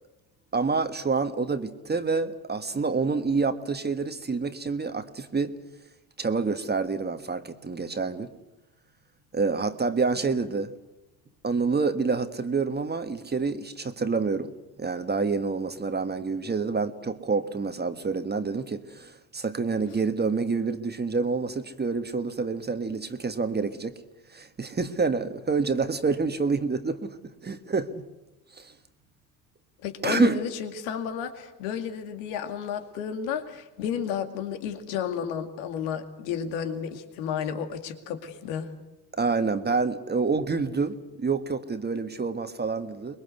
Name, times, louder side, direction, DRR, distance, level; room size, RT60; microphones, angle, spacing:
voice 1, 0.5-5.5 6.2-8.3 9.3-10.7 11.4-14.5 14.8-23.9 24.3-28.0 28.6-28.7 30.0-30.4 39.1-43.2, right 4 dB, 20° right, 1.5 m, -27 dB
voice 2, 29.8-38.7, left 8 dB, 70° left, 2.5 m, -32 dB
24.5 x 21.5 x 8.1 m
hypercardioid pair, 70°, 48 cm